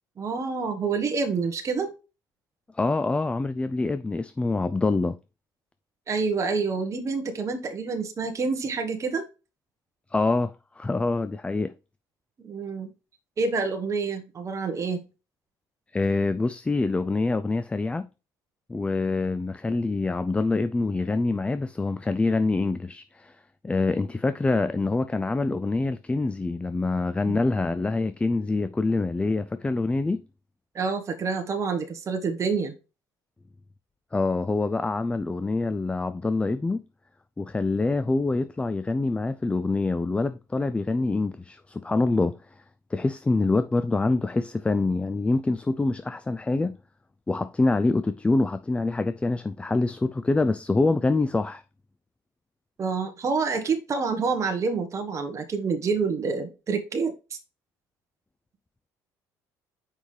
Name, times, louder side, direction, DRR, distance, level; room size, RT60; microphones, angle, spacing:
voice 1, 0.2-1.9 6.1-9.2 12.4-12.9 13.4-15.0 27.3-27.4 30.7-32.7 52.8-57.1, right 4 dB, 35° right, 1.3 m, -27 dB
voice 2, 2.7-5.2 10.1-11.7 15.9-18.1 18.7-23.3 23.6-30.2 34.1-36.8 37.4-42.3 42.9-46.7 47.3-51.6, left 3 dB, 15° left, 0.4 m, -25 dB
6.2 x 5.4 x 3.2 m
supercardioid pair, 90°, 8 cm